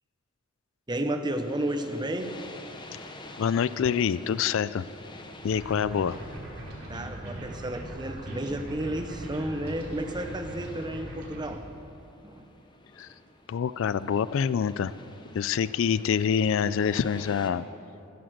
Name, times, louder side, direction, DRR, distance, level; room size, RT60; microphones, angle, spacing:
voice 1, 0.9-2.3 6.9-11.6 12.2-12.5, right 1 dB, 20° right, 7 dB, 0.8 m, -32 dB
sound 1, 1.3-17.5, left 2 dB, 20° left, 0.9 m, -49 dB
voice 2, 3.4-4.9 5.4-6.2 13.0-13.1 13.5-14.9 15.3-17.7, left 7 dB, 65° left, 16 dB, 0.3 m, -26 dB
sound 2, 5.4-11.5, right 1 dB, 70° right, 3.6 m, -40 dB
14.5 x 9.4 x 7.8 m, 2.8 s
head